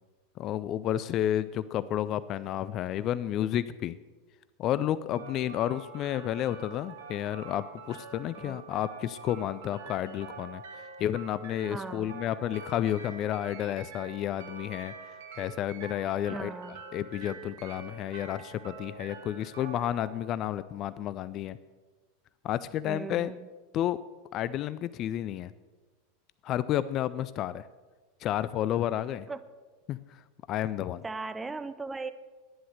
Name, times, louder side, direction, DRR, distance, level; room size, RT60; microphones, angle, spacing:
voice 1, 0.4-4.0 4.6-10.6 11.0-14.9 15.4-16.5 16.9-21.6 22.4-23.3 23.7-24.0 24.3-25.5 26.4-27.6 28.2-29.3 29.9-30.2 30.5-31.0, left 11 dB, 35° left, 16 dB, 0.4 m, -31 dB
sound 1, 5.1-21.2, right 4 dB, 60° right, 1.8 m, -46 dB
voice 2, 11.7-12.1 16.3-16.8 22.9-23.5 29.3-29.4 31.0-32.1, right 3 dB, 10° right, 12 dB, 0.6 m, -38 dB
11.0 x 10.0 x 6.6 m, 1.3 s
figure-of-eight pair, 85°, 0 cm